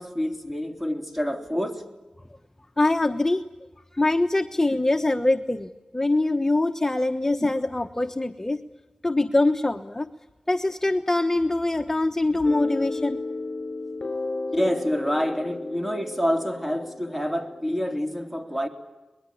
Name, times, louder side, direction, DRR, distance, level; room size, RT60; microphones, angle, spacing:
voice 1, 0.0-1.8 14.5-18.7, equal, 5° right, 6 dB, 3.5 m, -27 dB
voice 2, 2.8-3.5 3.9-8.6 9.0-10.1 10.5-13.2, left 2 dB, 20° left, 7 dB, 1.1 m, -23 dB
sound 1, 12.4-17.9, left 3 dB, 50° left, 3.9 m, -34 dB
24.5 x 21.0 x 9.9 m, 1.1 s
cardioid pair, 55°, 2 cm